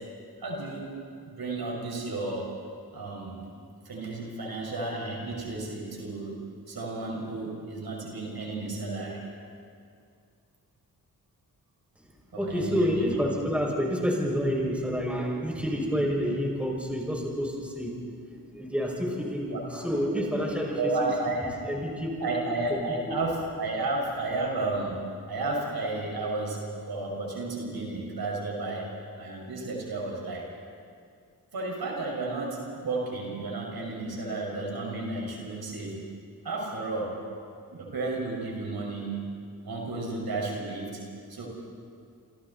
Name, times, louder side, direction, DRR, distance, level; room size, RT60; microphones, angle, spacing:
voice 1, 0.4-0.9 1.3-2.5 2.9-3.5 3.9-6.4 6.7-9.2 12.3-13.0 19.5-19.6 20.1-20.5 20.8-21.5 22.2-25.0 25.3-28.9 29.2-30.5 31.5-36.0 36.4-37.2 37.7-39.2 39.6-41.0 41.3-41.5, right 2 dB, 75° right, -2 dB, 5.7 m, -32 dB
voice 2, 12.4-17.9 18.4-21.1 21.4-22.3 22.7-22.8, equal, 5° right, -2 dB, 6.2 m, -29 dB
28.5 x 26.5 x 4.3 m, 2.3 s
cardioid pair, 70°, 37 cm